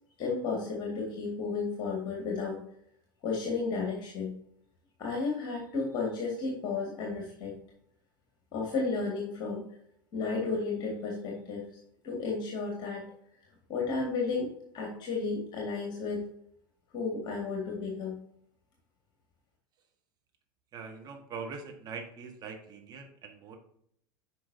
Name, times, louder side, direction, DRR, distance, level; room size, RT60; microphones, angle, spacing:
voice 1, 0.2-2.6 3.2-4.3 5.0-7.5 8.5-9.7 10.1-11.7 12.0-13.0 13.7-16.2 16.9-18.2, left 4 dB, 35° left, -1 dB, 2.0 m, -33 dB
voice 2, 20.7-23.6, right 5 dB, 35° right, 3 dB, 1.6 m, -42 dB
9.0 x 5.4 x 2.8 m, 0.70 s
figure-of-eight pair, 80°, 12 cm